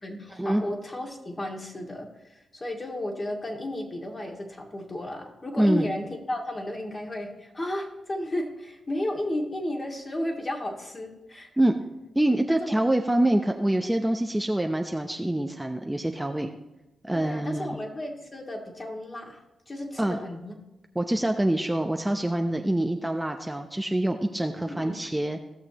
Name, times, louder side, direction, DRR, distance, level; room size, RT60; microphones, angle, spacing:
voice 1, 0.0-11.5 12.5-12.8 17.1-20.6 24.6-25.0, left 1 dB, 35° left, 0 dB, 2.3 m, -33 dB
voice 2, 5.6-5.9 11.6-11.7 12.1-16.5 17.0-17.8 20.0-20.2 21.0-25.4, right 1 dB, 10° right, 4 dB, 0.7 m, -25 dB
16.5 x 6.5 x 3.0 m, 0.98 s
supercardioid pair, 50°, 0 cm